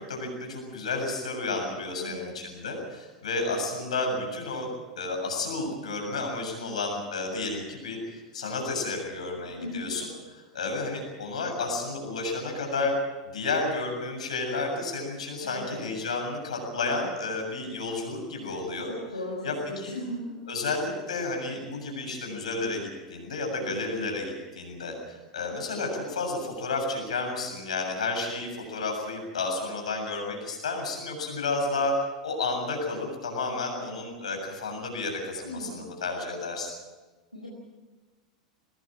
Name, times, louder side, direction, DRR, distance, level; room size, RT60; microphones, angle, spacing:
voice 1, 0.0-4.7 5.0-10.1 10.5-13.0 13.3-18.9 19.4-20.0 20.5-32.0 32.2-36.7, left 3 dB, 65° left, 2 dB, 7.4 m, -31 dB
voice 2, 2.0-2.3 9.6-9.9 15.4-15.8 18.9-20.4 35.4-35.9 37.3-37.5, left 1 dB, 90° left, -4 dB, 4.7 m, -37 dB
22.5 x 20.0 x 7.6 m, 1.3 s
figure-of-eight pair, 90°, 4 cm